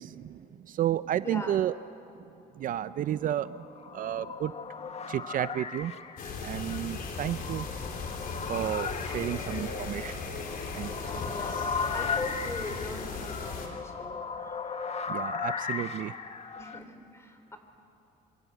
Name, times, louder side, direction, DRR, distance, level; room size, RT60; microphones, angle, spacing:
voice 1, 0.0-1.7 2.6-3.7 3.9-4.5 5.1-5.9 6.4-7.7 8.4-10.1 10.7-10.9 15.1-16.1, right 11 dB, 55° right, 14 dB, 0.5 m, -32 dB
voice 2, 1.2-1.6 9.0-9.7 11.0-11.6 11.9-14.6 16.5-17.6, left 2 dB, 15° left, 6 dB, 4.1 m, -41 dB
sound 1, 3.4-16.8, left 5 dB, 40° left, 1.5 m, -37 dB
sound 2, 6.2-13.7, left 4 dB, 60° left, 4.3 m, -37 dB
27.0 x 25.5 x 8.2 m, 2.8 s
cardioid pair, 110°, 17 cm